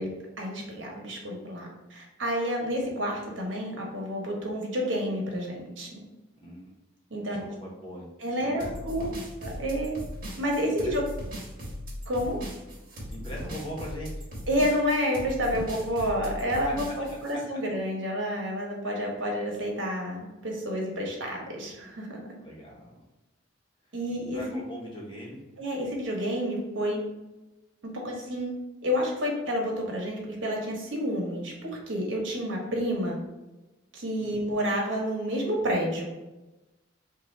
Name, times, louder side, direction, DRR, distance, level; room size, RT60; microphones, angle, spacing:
voice 1, 0.0-6.0 7.1-7.5 8.2-9.1 9.4-10.0 10.3-11.0 12.1-12.4 14.5-22.2 23.9-24.6 25.6-27.0 28.0-28.5 28.8-33.2 33.9-36.0, equal, 80° right, -1 dB, 1.1 m, -29 dB
voice 2, 6.4-6.7 7.3-9.1 10.6-11.0 13.1-14.1 16.9-17.0 22.4-23.0 24.3-25.4 34.2-34.4, equal, 25° left, -4 dB, 1.0 m, -41 dB
sound 1, 8.6-17.3, equal, 50° right, 1.2 m, -38 dB
3.7 x 2.5 x 4.2 m, 1.0 s
head